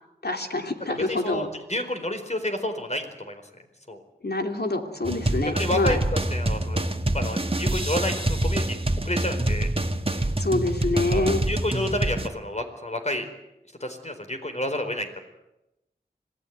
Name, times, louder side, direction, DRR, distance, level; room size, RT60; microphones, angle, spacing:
voice 1, 0.2-1.5 4.2-6.0 10.4-11.4, left 2 dB, 70° left, 4 dB, 2.9 m, -26 dB
voice 2, 1.0-3.4 3.9-4.0 5.4-6.0 6.3-6.8 7.1-9.7 11.1-13.3 13.8-15.2, left 1 dB, 40° left, 5 dB, 4.5 m, -30 dB
sound 1, 5.0-12.3, right 1 dB, 35° right, 1.7 m, -26 dB
26.5 x 18.0 x 9.5 m, 0.92 s
wide cardioid pair, 50°, 17 cm